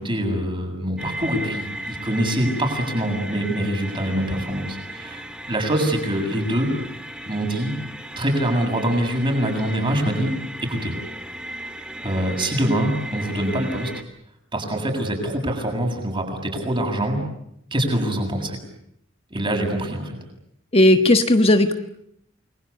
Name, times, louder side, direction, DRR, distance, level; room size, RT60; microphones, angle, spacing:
voice 1, 0.0-6.7 7.3-7.7 8.2-10.3 10.6-11.0 12.0-13.9 14.5-17.2 17.7-18.6 19.3-20.1, right 1 dB, 25° right, 3 dB, 7.5 m, -24 dB
sound 1, 1.0-14.0, right 1 dB, 5° right, 2.4 m, -36 dB
voice 2, 20.7-21.7, left 1 dB, 30° left, 7 dB, 1.3 m, -15 dB
29.5 x 22.0 x 8.6 m, 0.74 s
head